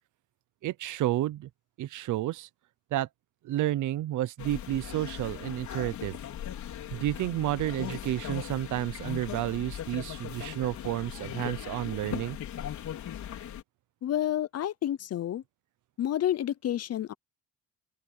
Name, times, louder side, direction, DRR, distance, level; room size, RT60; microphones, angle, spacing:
voice 1, 0.6-1.5 1.8-2.5 2.9-3.1 3.4-6.2 6.9-12.4, right 14 dB, 80° right, 0.8 m, -31 dB
sound 1, 4.4-13.6, left 10 dB, 70° left, 4.9 m, -39 dB
voice 2, 14.0-15.4 16.0-17.1, left 11 dB, 55° left, 0.7 m, -29 dB
open air
cardioid pair, 90°, 30 cm